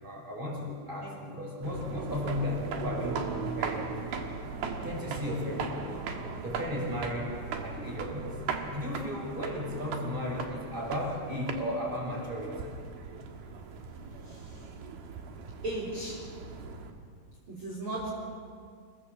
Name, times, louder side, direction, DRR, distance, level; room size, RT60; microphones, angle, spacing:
voice 1, 0.0-3.8 4.8-6.0 6.4-8.4 8.7-12.7, left 1 dB, 15° right, -1 dB, 5.8 m, -35 dB
sound 1, 1.6-16.9, right 5 dB, 85° right, 3.5 m, -38 dB
voice 2, 15.6-16.2 17.5-18.1, right 1 dB, 35° right, -6 dB, 4.3 m, -35 dB
28.0 x 17.5 x 7.5 m, 2.2 s
omnidirectional pair, 4.2 m